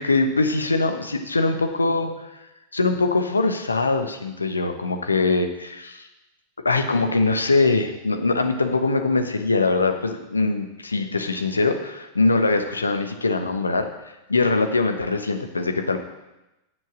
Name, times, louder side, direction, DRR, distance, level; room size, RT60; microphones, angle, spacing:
voice 1, 0.0-2.3 2.7-6.1 6.6-13.9 14.3-16.0, left 3 dB, 80° left, 6 dB, 1.0 m, -22 dB
9.8 x 7.5 x 6.1 m, 0.98 s
figure-of-eight pair, 90°, 0 cm